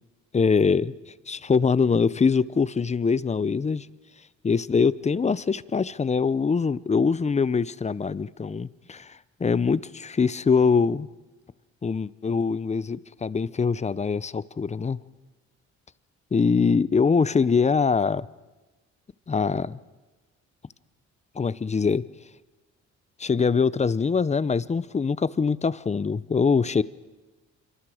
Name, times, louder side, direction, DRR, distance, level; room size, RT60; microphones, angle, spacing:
voice 1, 0.3-3.9 4.4-11.1 11.8-15.0 16.3-18.3 19.3-19.8 21.3-22.0 23.2-26.8, left 5 dB, 25° left, 19 dB, 0.6 m, -23 dB
26.5 x 24.0 x 5.0 m, 1.2 s
cardioid pair, 90°, 30 cm